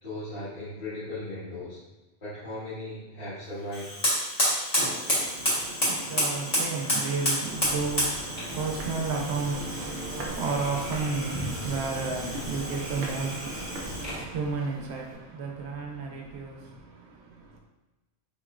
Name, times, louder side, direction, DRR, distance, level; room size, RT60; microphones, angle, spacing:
voice 1, 0.0-1.8 2.2-3.9, left 1 dB, 55° left, 1.7 m, -37 dB
Fire, 3.7-14.3, equal, 35° left, 1.3 m, -30 dB
voice 2, 5.0-17.6, right 4 dB, 90° right, 1.0 m, -33 dB
sound 1, 8.5-14.2, right 1 dB, 60° right, 0.7 m, -38 dB
4.3 x 3.0 x 2.4 m
omnidirectional pair, 1.1 m